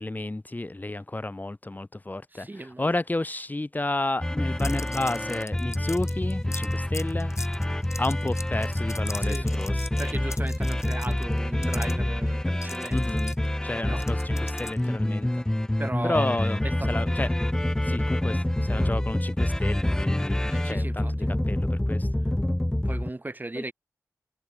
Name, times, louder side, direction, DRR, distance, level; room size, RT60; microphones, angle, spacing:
voice 1, 0.0-7.3 8.0-9.7 12.9-13.4 13.6-15.3 16.0-17.3 17.9-22.1 23.5-23.6, left 2 dB, 30° left, 3.8 m, -31 dB
voice 2, 2.3-2.9 4.4-4.8 9.2-9.5 10.0-13.0 13.8-14.0 14.8-15.2 15.8-16.3 16.6-17.0 20.5-21.3 22.8-23.7, right 2 dB, 30° right, 4.0 m, -37 dB
sound 1, 4.2-23.1, left 1 dB, 10° left, 0.4 m, -27 dB
sound 2, 4.6-11.9 12.6-15.0, left 3 dB, 55° left, 3.8 m, -40 dB
cardioid pair, 55°, 6 cm